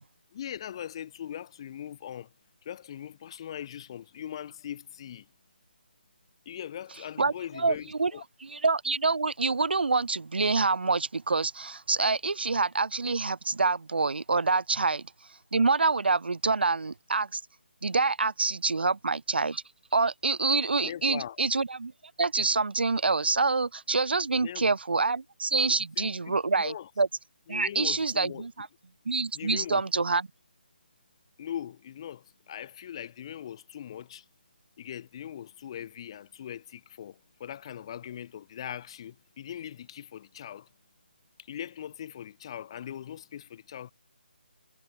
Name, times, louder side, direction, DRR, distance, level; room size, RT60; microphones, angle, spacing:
voice 1, 0.3-2.3 2.6-5.3 6.5-8.2 20.8-21.4 24.3-24.6 25.7-26.1 26.5-26.9 27.5-28.5 29.3-29.8 31.4-34.2 34.8-40.7 41.4-43.9, left 10 dB, 30° left, 0.5 m, -40 dB
voice 2, 7.2-8.1 8.4-17.4 17.8-19.6 19.9-21.9 22.2-27.1 27.5-28.7 29.0-30.3, right 4 dB, 75° right, 0.8 m, -26 dB
figure-of-eight pair, 155°, 6 cm